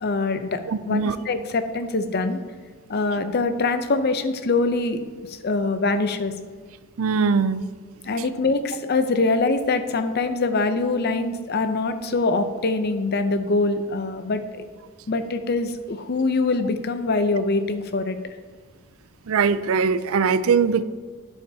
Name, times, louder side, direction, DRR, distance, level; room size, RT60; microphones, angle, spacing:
voice 1, 0.0-2.4 2.9-5.0 5.3-6.3 8.0-14.6 15.1-18.3, left 3 dB, 50° left, 9 dB, 0.6 m, -24 dB
voice 2, 0.7-1.2 7.0-7.6 19.3-20.8, right 5 dB, 75° right, 15 dB, 0.4 m, -21 dB
11.5 x 9.2 x 2.8 m, 1.5 s
head